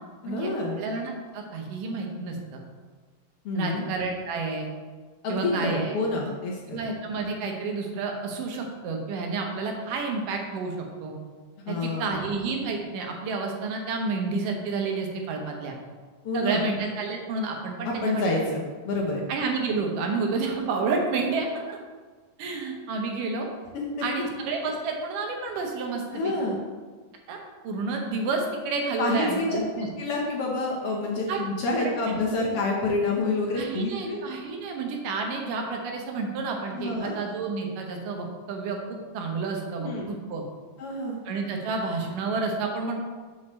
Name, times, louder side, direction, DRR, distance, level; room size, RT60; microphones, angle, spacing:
voice 1, 0.2-0.8 3.4-3.9 5.2-6.8 11.7-12.2 16.2-16.7 17.8-19.2 23.7-24.3 26.1-26.6 29.0-29.6 30.0-34.3 36.7-37.2 39.8-40.1 40.8-41.2, left 2 dB, 70° left, -2 dB, 1.4 m, -28 dB
voice 2, 0.8-2.6 3.6-4.7 5.3-6.0 6.7-11.1 11.7-15.8 16.3-18.3 19.3-21.8 22.4-23.5 24.0-26.3 27.3-27.4 27.6-29.9 31.3-31.4 31.8-31.9 33.6-38.8 39.1-40.4 41.3-43.0, right 4 dB, 80° right, 2 dB, 2.6 m, -30 dB
6.4 x 4.3 x 6.3 m, 1.4 s
omnidirectional pair, 3.7 m